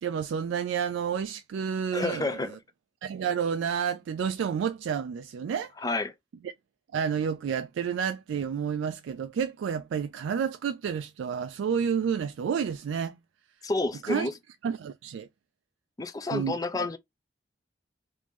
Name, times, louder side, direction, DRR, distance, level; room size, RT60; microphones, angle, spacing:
voice 1, 0.0-2.4 3.0-5.7 6.9-13.2 14.0-14.3 14.6-15.3 16.3-16.6, right 7 dB, 85° right, 0.3 m, -30 dB
voice 2, 1.9-2.6 5.8-6.1 13.6-14.3 16.0-17.0, left 2 dB, 20° left, 0.4 m, -30 dB
3.0 x 2.6 x 3.4 m
head